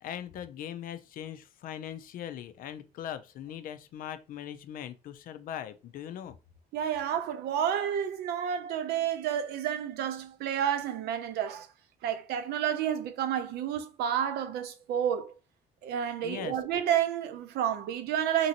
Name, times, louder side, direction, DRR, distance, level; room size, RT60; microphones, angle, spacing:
voice 1, 0.0-6.4 16.2-16.6, left 10 dB, 55° left, 0.4 m, -40 dB
voice 2, 6.7-11.7 12.0-15.3 15.8-18.5, right 9 dB, 75° right, 0.5 m, -30 dB
3.0 x 2.6 x 2.7 m
cardioid pair, 110°, 17 cm